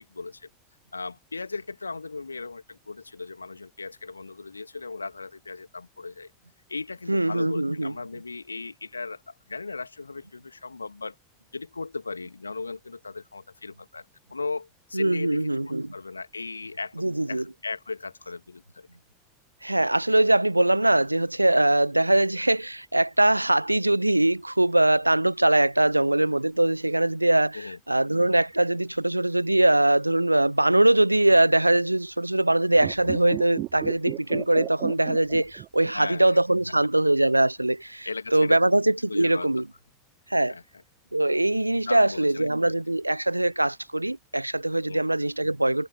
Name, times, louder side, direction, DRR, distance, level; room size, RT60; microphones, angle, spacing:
voice 1, 0.1-0.5 0.9-6.3 6.7-11.2 11.5-17.0 17.3-18.9 27.5-27.8 35.9-36.4 38.1-38.6 39.1-39.5 40.5-40.6 41.9-42.8 44.9-45.1, left 4 dB, 80° left, 2.3 m, -37 dB
voice 2, 7.1-7.9 14.9-15.9 17.0-17.4 19.6-39.7 40.3-40.6 41.1-45.9, right 1 dB, 85° right, 0.6 m, -22 dB
sound 1, 32.7-36.1 36.4-36.5, right 17 dB, 40° right, 2.9 m, -34 dB
figure-of-eight pair, 85°, 0 cm